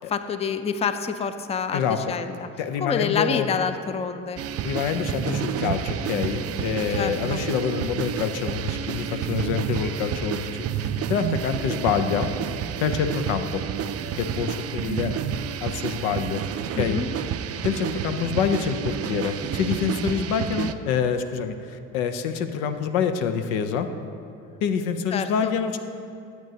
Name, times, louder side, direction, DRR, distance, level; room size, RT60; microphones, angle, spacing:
voice 1, 0.1-2.5 2.8-4.4 7.0-7.4 16.7-17.1 25.1-25.5, left 6 dB, 15° left, 10 dB, 0.4 m, -27 dB
voice 2, 1.7-2.1 2.6-3.5 4.6-10.5 10.8-12.3 12.8-13.6 14.2-15.2 15.6-16.4 16.8-17.2 17.6-23.9 24.6-25.8, left 7 dB, 80° left, 8 dB, 0.7 m, -26 dB
sound 1, 4.4-20.7, right 8 dB, 40° right, 0.5 m, -30 dB
13.5 x 8.2 x 2.8 m, 2.5 s
hypercardioid pair, 55°, 40 cm